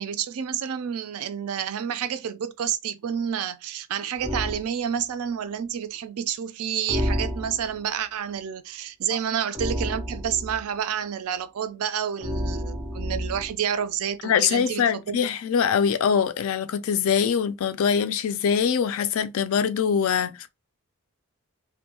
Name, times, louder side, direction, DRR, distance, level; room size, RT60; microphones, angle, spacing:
voice 1, 0.0-15.2, right 8 dB, 75° right, 0.4 m, -29 dB
sound 1, 4.2-4.7 6.9-7.8 9.5-10.7 12.2-13.6, equal, 10° right, 0.5 m, -30 dB
voice 2, 14.2-20.3, left 7 dB, 65° left, 0.3 m, -23 dB
2.5 x 2.2 x 2.8 m
head